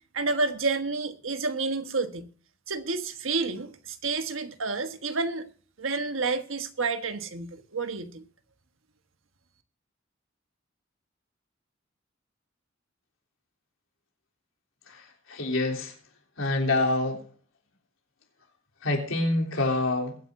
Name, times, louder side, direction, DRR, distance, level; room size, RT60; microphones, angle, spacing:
voice 1, 0.1-2.3 2.7-5.5 5.8-8.2, right 3 dB, 75° right, 1.4 m, -30 dB
voice 2, 15.3-15.9 16.4-17.2 18.8-20.1, left 2 dB, 85° left, 3.3 m, -26 dB
22.0 x 9.7 x 2.6 m
head